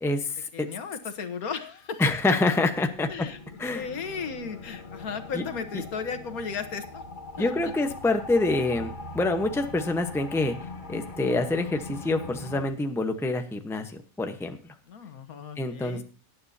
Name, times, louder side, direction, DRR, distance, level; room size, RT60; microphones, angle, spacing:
voice 1, 0.0-0.7 2.0-3.3 3.6-3.9 5.3-5.4 7.4-10.5 10.9-13.9 14.2-14.6 15.6-16.0, left 2 dB, ahead, 6 dB, 0.8 m, -26 dB
voice 2, 0.5-2.0 3.1-3.4 3.7-7.0 7.4-7.5 14.9-16.0, left 6 dB, 80° left, 9 dB, 1.6 m, -35 dB
sound 1, 2.2-12.7, left 3 dB, 35° left, 1.2 m, -41 dB
18.5 x 9.6 x 2.8 m, 0.38 s
omnidirectional pair, 1.5 m